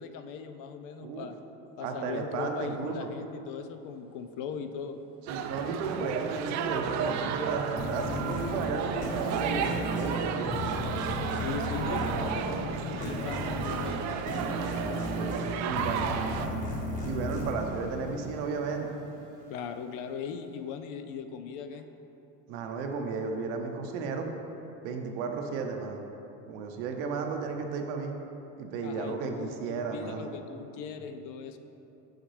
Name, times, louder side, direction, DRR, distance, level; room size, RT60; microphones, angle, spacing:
voice 1, 0.0-1.4 1.8-5.0 11.3-14.5 19.5-21.9 28.8-31.6, left 6 dB, 65° left, 8 dB, 0.5 m, -39 dB
voice 2, 1.0-1.3 1.8-3.1 5.3-10.5 12.0-12.3 14.6-16.7 17.0-18.9 22.5-24.3 24.8-26.0 26.5-28.1 28.6-30.3, right 4 dB, 85° right, 4 dB, 0.8 m, -34 dB
sound 1, 3.9-13.7, right 2 dB, 15° right, 0.8 m, -52 dB
sound 2, 5.3-16.5, right 7 dB, 55° right, 0.4 m, -34 dB
sound 3, 7.8-18.9, left 1 dB, 25° left, 1.5 m, -35 dB
6.4 x 6.4 x 3.2 m, 2.9 s
supercardioid pair, 115°, 34 cm